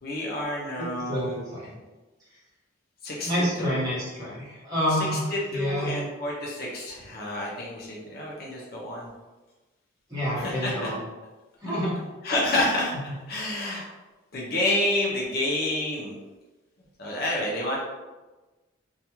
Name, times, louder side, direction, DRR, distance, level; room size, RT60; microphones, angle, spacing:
voice 1, 0.0-1.4 3.0-3.3 3.6-3.7 4.9-9.1 10.3-10.9 12.2-12.9 13.3-13.9 14.3-16.2 17.0-17.8, left 1 dB, 50° left, -3 dB, 0.5 m, -29 dB
voice 2, 1.1-1.7 3.2-5.2 5.5-5.9 10.1-11.0 11.6-11.9, equal, 20° right, -9 dB, 1.0 m, -28 dB
2.3 x 2.2 x 2.9 m, 1.2 s
head